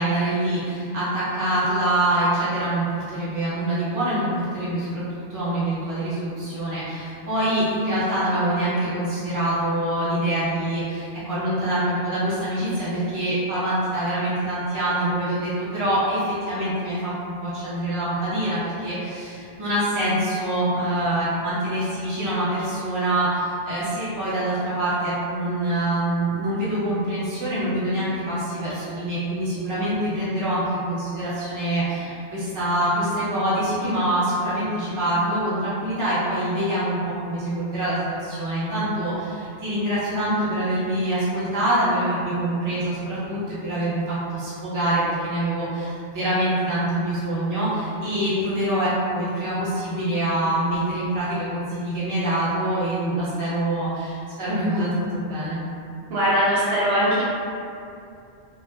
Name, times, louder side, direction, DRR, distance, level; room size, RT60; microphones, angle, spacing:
voice 1, 0.0-5.0 5.3-55.6, right 1 dB, 20° right, -11 dB, 0.6 m, -25 dB
voice 2, 56.1-57.2, equal, 65° right, -8 dB, 0.8 m, -20 dB
2.6 x 2.4 x 2.3 m, 2.5 s
omnidirectional pair, 1.1 m